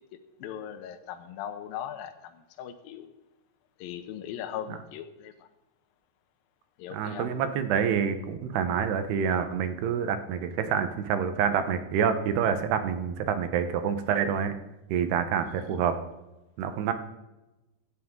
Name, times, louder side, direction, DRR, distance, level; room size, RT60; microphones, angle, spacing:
voice 1, 0.4-3.1 3.8-5.3 6.8-7.3 15.4-15.6, left 10 dB, 85° left, 7 dB, 2.1 m, -39 dB
voice 2, 6.9-14.6 14.9-16.0 16.6-16.9, right 7 dB, 75° right, 9 dB, 2.7 m, -27 dB
16.0 x 13.5 x 3.7 m, 1.0 s
omnidirectional pair, 5.3 m